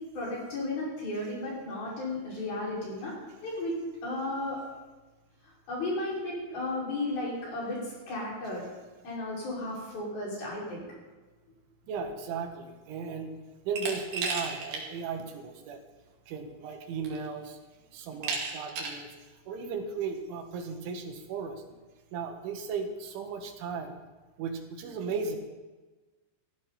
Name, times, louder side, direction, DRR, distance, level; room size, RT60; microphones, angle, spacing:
voice 1, 0.1-3.1 3.4-3.7 4.0-4.6 5.7-7.8 8.1-8.6 9.0-10.8, left 2 dB, 55° left, -5 dB, 7.2 m, -34 dB
voice 2, 11.9-13.3 13.7-15.8 16.3-17.6 17.9-19.1 19.5-21.7 22.1-24.0 24.4-25.4, right 5 dB, 90° right, 4 dB, 4.0 m, -36 dB
Glass, 13.8-14.9 15.3-15.4 16.5-16.6 17.0-17.5 18.2-19.0, right 4 dB, 60° right, 3.8 m, -34 dB
18.0 x 14.5 x 4.2 m, 1.2 s
omnidirectional pair, 5.3 m